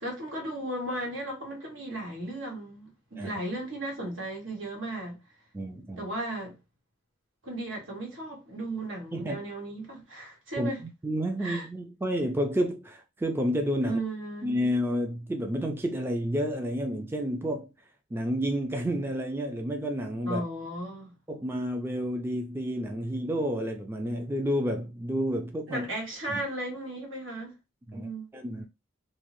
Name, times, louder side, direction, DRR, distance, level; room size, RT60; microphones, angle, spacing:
voice 1, 0.0-5.2 6.0-6.6 7.4-10.8 11.4-11.7 13.8-14.5 20.3-21.2 25.7-27.5 27.9-28.3, right 1 dB, 85° right, 1.2 m, -35 dB
voice 2, 5.5-6.1 9.1-9.4 10.6-10.7 11.0-14.0 14.4-17.7 18.1-20.4 21.3-25.9 26.3-26.4 27.9-28.6, equal, 10° right, 0.3 m, -30 dB
2.6 x 2.0 x 3.0 m
head